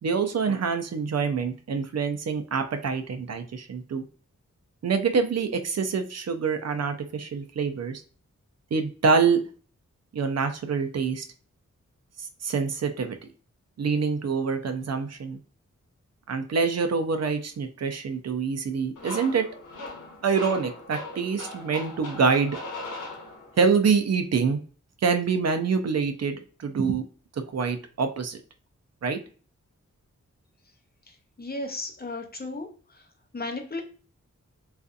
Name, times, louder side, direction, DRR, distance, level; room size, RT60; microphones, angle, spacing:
voice 1, 0.0-4.0 4.8-8.0 8.7-9.4 10.1-11.3 12.2-13.2 13.8-15.4 16.3-19.5 20.2-22.6 23.6-24.6 25.0-27.0 27.3-28.4 29.0-29.2, right 5 dB, 60° right, 6 dB, 0.5 m, -26 dB
sound 1, 19.0-23.8, left 2 dB, 85° left, 1.0 m, -39 dB
voice 2, 31.4-33.0 33.3-33.8, left 2 dB, 30° left, 4 dB, 0.6 m, -34 dB
2.5 x 2.4 x 2.3 m, 0.39 s
cardioid pair, 50°, 30 cm